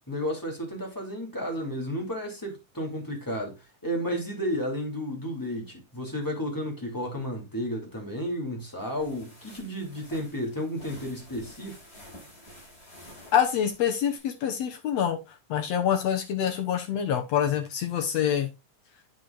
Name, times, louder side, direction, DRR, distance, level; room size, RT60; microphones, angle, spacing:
voice 1, 0.1-11.8, equal, 5° left, 1.9 m, -32 dB
sound 1, 8.8-14.2, left 1 dB, 25° left, 5.8 m, -50 dB
voice 2, 13.3-15.2 15.5-18.5, left 9 dB, 65° left, 1.7 m, -26 dB
9.2 x 6.3 x 2.4 m
omnidirectional pair, 3.8 m